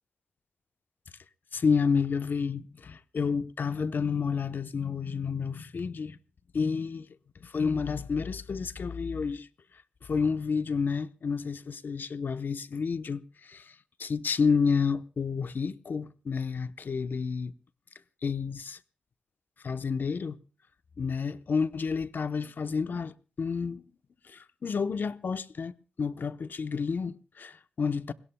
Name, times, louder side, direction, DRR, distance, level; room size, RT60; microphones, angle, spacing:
voice 1, 1.5-6.2 6.5-7.1 7.4-9.5 10.1-13.6 14.0-17.5 18.2-18.8 19.6-20.4 21.0-23.8 24.3-25.7 26.0-28.1, left 5 dB, 65° left, 0.8 m, -30 dB
26.0 x 21.0 x 2.2 m
wide cardioid pair, 90°, 4 cm